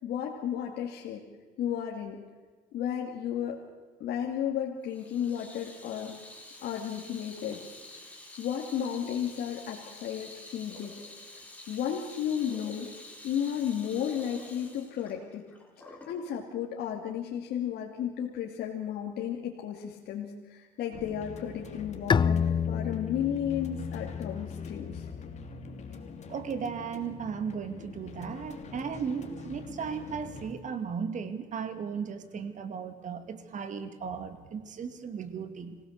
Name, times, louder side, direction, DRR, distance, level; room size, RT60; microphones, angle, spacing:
voice 1, 0.0-1.2 1.6-2.2 2.7-3.6 4.0-6.2 6.6-7.6 8.4-10.9 11.7-12.9 13.2-15.4 15.8-25.1, left 9 dB, 70° left, 0 dB, 2.5 m, -33 dB
Water tap faucet / Sink (filling or washing), 4.9-16.2, left 2 dB, 10° left, 5.1 m, -48 dB
sound 1, 20.9-30.5, left 4 dB, 40° left, 2.9 m, -44 dB
Bowed string instrument, 22.1-25.6, left 7 dB, 25° left, 0.6 m, -30 dB
voice 2, 26.3-35.8, right 6 dB, 50° right, 10 dB, 2.5 m, -36 dB
26.5 x 17.5 x 6.7 m, 1.4 s
cardioid pair, 110°, 17 cm